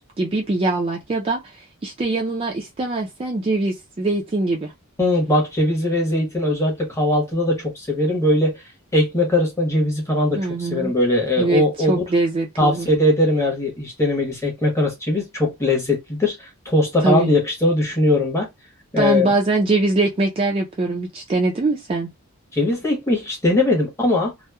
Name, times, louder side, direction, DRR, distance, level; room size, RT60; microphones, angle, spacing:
voice 1, 0.2-1.4 1.8-4.7 10.4-10.9 11.4-12.9 17.0-17.3 19.0-22.1, right 2 dB, 25° right, 0.4 m, -22 dB
voice 2, 5.0-8.5 8.9-12.0 12.6-18.5 18.9-19.3 22.5-24.3, left 1 dB, 15° left, 0.9 m, -20 dB
2.8 x 2.0 x 2.2 m
head